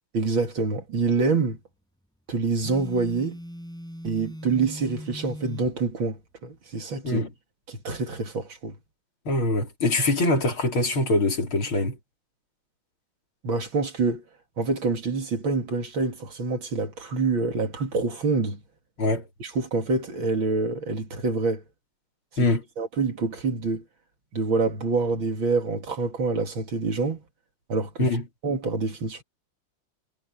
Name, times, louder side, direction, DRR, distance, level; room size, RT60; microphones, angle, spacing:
voice 1, 0.1-1.6 2.3-3.4 4.0-7.2 7.7-8.8 13.4-14.2 14.6-18.6 19.4-21.6 22.8-23.8 24.3-27.2 27.7-28.1 28.4-29.2, right 3 dB, 65° right, 3.3 m, -26 dB
Telephone, 2.6-5.7, equal, ahead, 6.5 m, -39 dB
voice 2, 9.3-12.0 19.0-19.3 22.4-22.6 28.0-28.2, left 2 dB, 75° left, 5.6 m, -23 dB
omnidirectional pair, 2.3 m